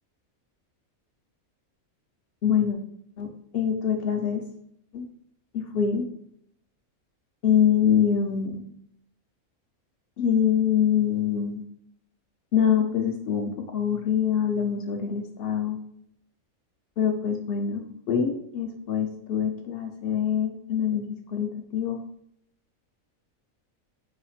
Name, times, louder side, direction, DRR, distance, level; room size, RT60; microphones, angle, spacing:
voice 1, 2.4-2.8 3.2-4.4 4.9-5.1 5.5-6.1 7.4-8.6 10.2-11.6 12.5-15.8 17.0-22.0, left 8 dB, 70° left, 4 dB, 0.5 m, -25 dB
4.9 x 2.3 x 4.3 m, 0.72 s
omnidirectional pair, 1.5 m